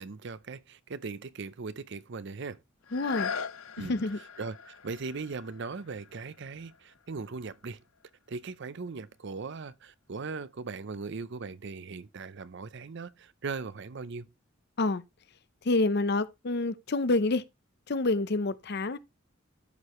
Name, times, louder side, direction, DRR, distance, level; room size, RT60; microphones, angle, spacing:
voice 1, 0.0-2.6 3.8-4.0 4.4-7.8 8.3-14.3, right 4 dB, 60° right, 0.6 m, -39 dB
sound 1, 2.8-8.5 9.1-9.2, left 6 dB, 90° left, 0.6 m, -42 dB
voice 2, 2.9-3.3 3.8-4.2 14.8-15.0 15.6-17.4 17.9-19.0, left 2 dB, 55° left, 0.7 m, -27 dB
13.5 x 4.8 x 3.1 m
head